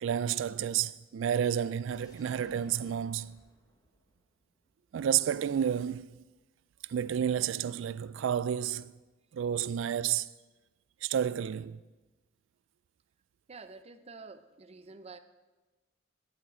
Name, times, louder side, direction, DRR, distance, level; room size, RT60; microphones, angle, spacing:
voice 1, 0.0-3.4 4.9-6.1 6.8-8.9 9.3-10.3 11.0-11.8, right 9 dB, 65° right, 0.3 m, -30 dB
sound 1, 1.9-5.0 5.3-5.4, left 1 dB, 20° left, 1.1 m, -62 dB
voice 2, 13.5-15.2, right 4 dB, 30° right, 0.6 m, -48 dB
11.5 x 8.8 x 7.5 m
head